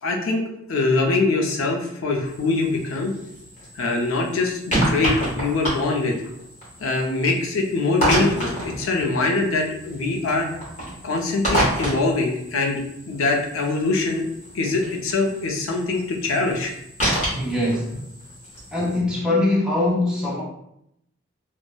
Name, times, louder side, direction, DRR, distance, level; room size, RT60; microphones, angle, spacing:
voice 1, 0.0-3.1 3.8-6.2 6.8-10.5 11.0-12.8 13.1-14.3 14.5-16.7, left 3 dB, 85° left, 1 dB, 0.5 m, -23 dB
sound 1, 2.3-19.0, right 1 dB, 35° left, 0.8 m, -29 dB
voice 2, 17.2-18.0 18.7-20.4, left 2 dB, 5° right, -5 dB, 0.5 m, -22 dB
3.0 x 2.0 x 2.2 m, 0.78 s
head